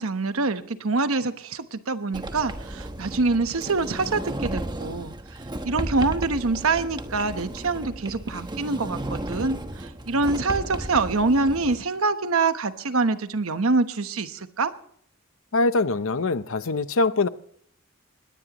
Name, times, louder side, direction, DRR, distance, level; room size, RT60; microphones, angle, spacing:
voice 1, 0.0-14.7, right 3 dB, 70° right, 1.0 m, -25 dB
Sliding door, 2.1-11.8, right 1 dB, 20° right, 1.1 m, -34 dB
voice 2, 15.5-17.3, left 3 dB, 65° left, 0.8 m, -23 dB
20.5 x 17.5 x 3.0 m
head